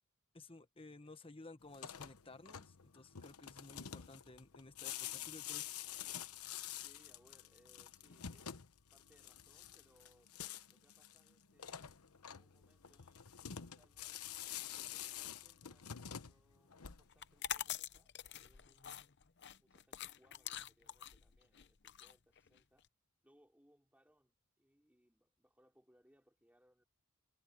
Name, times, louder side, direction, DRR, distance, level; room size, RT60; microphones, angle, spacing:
voice 1, 0.3-5.7, left 2 dB, 25° left, 1.2 m, -56 dB
sound 1, 1.6-17.3, left 10 dB, 90° left, 1.0 m, -48 dB
voice 2, 6.7-8.6 8.9-10.3 10.7-11.9 12.3-14.3 14.7-19.1 19.6-22.9 23.2-26.8, equal, 5° right, 3.6 m, -72 dB
sound 2, 17.1-22.8, left 11 dB, 50° left, 0.7 m, -46 dB
head